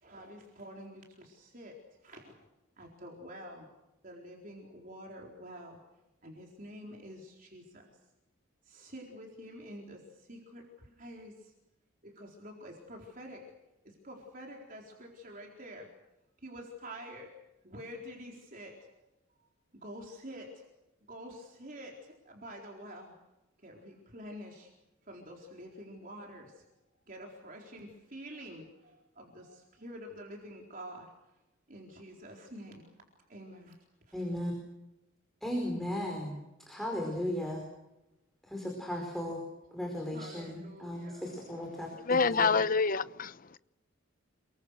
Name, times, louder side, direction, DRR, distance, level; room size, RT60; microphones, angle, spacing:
voice 1, 0.0-2.4 2.8-3.7 4.0-5.8 6.2-7.9 8.6-11.5 12.0-13.4 13.8-15.9 16.4-17.3 17.6-18.7 19.7-20.6 21.1-23.1 23.6-24.7 25.0-26.6 27.1-31.1 31.7-32.9 33.3-33.8 34.1-34.2 39.7-41.3, equal, 40° right, 4.2 m, -48 dB
voice 2, 34.1-34.5 35.4-36.4 36.7-37.6 38.4-39.4 39.7-42.6, left 1 dB, ahead, 4.9 m, -36 dB
voice 3, 42.0-43.6, left 4 dB, 45° left, 0.8 m, -27 dB
29.0 x 23.0 x 6.7 m
head